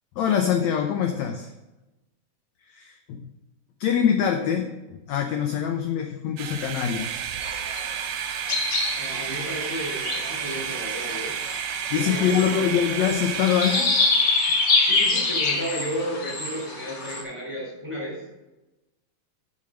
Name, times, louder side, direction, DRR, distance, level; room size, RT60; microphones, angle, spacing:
voice 1, 0.2-1.5 2.6-3.3 3.8-7.2 11.9-14.0, left 8 dB, 80° left, 4 dB, 1.6 m, -24 dB
sound 1, 6.4-14.4, right 9 dB, 75° right, 2.1 m, -31 dB
sound 2, 7.4-17.2, left 3 dB, 55° left, 1.1 m, -26 dB
voice 2, 8.9-11.4 11.9-13.0 14.8-18.2, equal, 10° right, -3 dB, 3.0 m, -33 dB
7.5 x 5.9 x 6.3 m, 1.0 s
omnidirectional pair, 4.0 m